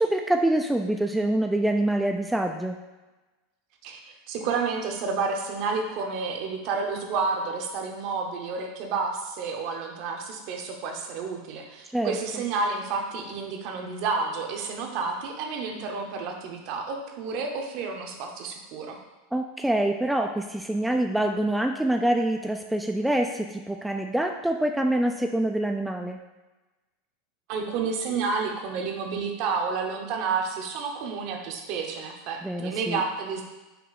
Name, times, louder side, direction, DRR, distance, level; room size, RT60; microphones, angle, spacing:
voice 1, 0.0-2.8 11.9-12.2 19.3-26.2 32.4-33.0, right 1 dB, 5° right, 3 dB, 0.3 m, -25 dB
voice 2, 3.8-19.0 27.5-33.4, right 4 dB, 60° right, 3 dB, 0.8 m, -30 dB
5.7 x 2.4 x 4.0 m, 1.1 s
supercardioid pair, 110°, 0 cm